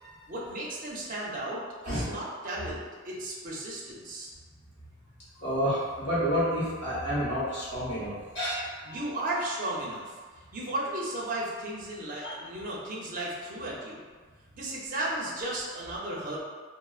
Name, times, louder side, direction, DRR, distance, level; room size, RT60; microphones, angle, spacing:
voice 1, 0.3-4.3 8.8-10.1 10.5-14.0 14.5-16.4, right 1 dB, 40° right, -5 dB, 0.6 m, -34 dB
voice 2, 5.4-9.0 12.2-12.4, equal, 55° left, -11 dB, 1.2 m, -30 dB
4.2 x 2.1 x 2.3 m, 1.5 s
head